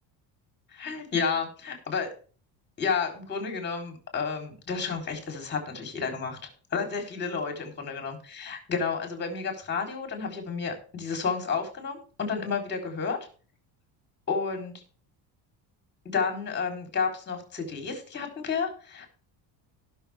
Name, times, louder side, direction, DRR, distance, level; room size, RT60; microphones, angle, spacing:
voice 1, 0.7-2.1 2.8-6.4 6.7-13.2 14.3-14.7 16.1-19.1, left 5 dB, 25° left, 4 dB, 3.6 m, -31 dB
18.0 x 6.4 x 3.5 m, 0.39 s
cardioid pair, 160°, 44 cm